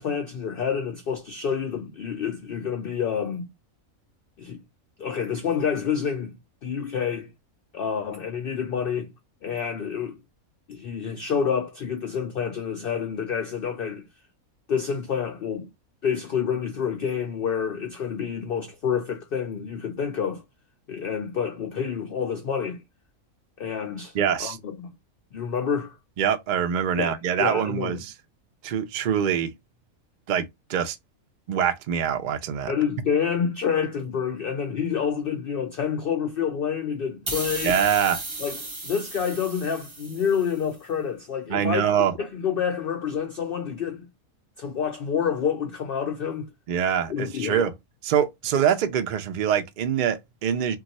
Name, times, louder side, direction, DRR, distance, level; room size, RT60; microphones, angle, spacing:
voice 1, 0.0-3.5 4.4-4.6 5.0-6.3 6.6-7.3 7.7-9.1 9.4-10.2 10.7-14.1 14.7-15.7 16.0-20.4 20.9-22.8 23.6-24.9 25.3-25.9 27.0-28.0 32.7-37.8 38.4-41.9 42.2-44.1 44.6-46.5 47.1-47.6, left 7 dB, 75° left, 0.5 m, -28 dB
voice 2, 24.1-24.6 26.2-28.1 28.6-29.5 30.3-31.0 31.5-32.7 37.6-38.2 41.5-42.1 46.7-47.7 48.0-50.8, right 8 dB, 90° right, 0.4 m, -24 dB
sound 1, 37.3-40.6, right 2 dB, 25° right, 0.7 m, -35 dB
2.4 x 2.3 x 4.0 m
omnidirectional pair, 1.5 m